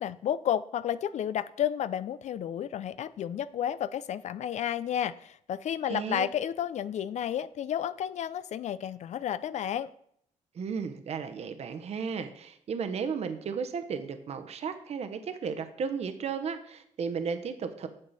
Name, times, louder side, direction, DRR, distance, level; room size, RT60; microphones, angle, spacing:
voice 1, 0.0-9.9, left 10 dB, 60° left, 15 dB, 0.4 m, -31 dB
voice 2, 5.9-6.3 10.5-17.9, right 6 dB, 50° right, 8 dB, 0.9 m, -34 dB
8.9 x 7.5 x 4.1 m, 0.68 s
cardioid pair, 105°, 14 cm